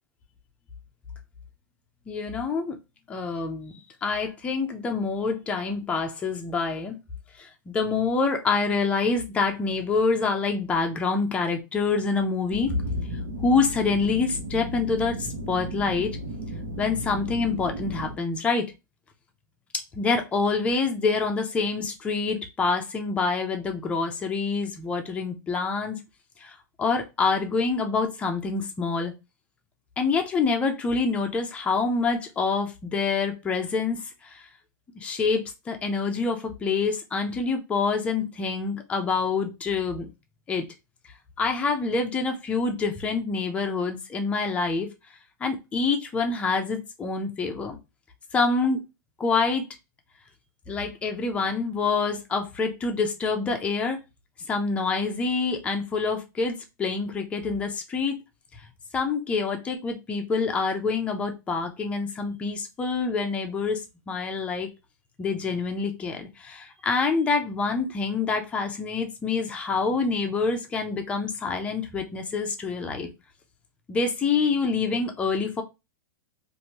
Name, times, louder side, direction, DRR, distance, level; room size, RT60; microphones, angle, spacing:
voice 1, 2.1-2.8 3.1-3.7 4.0-7.0 7.4-12.8 13.4-16.2 16.8-18.7 19.9-26.0 26.4-29.1 30.0-34.4 35.0-40.1 40.5-40.7 41.4-44.9 45.4-47.7 48.3-48.8 49.2-49.7 50.7-54.0 54.5-58.2 58.9-63.8 64.1-64.7 65.2-73.1 73.9-75.6, left 4 dB, 10° left, 3 dB, 0.5 m, -26 dB
sound 1, 12.5-18.2, right 1 dB, 85° right, 1.0 m, -35 dB
3.2 x 2.6 x 2.8 m, 0.25 s
supercardioid pair, 160°, 11 cm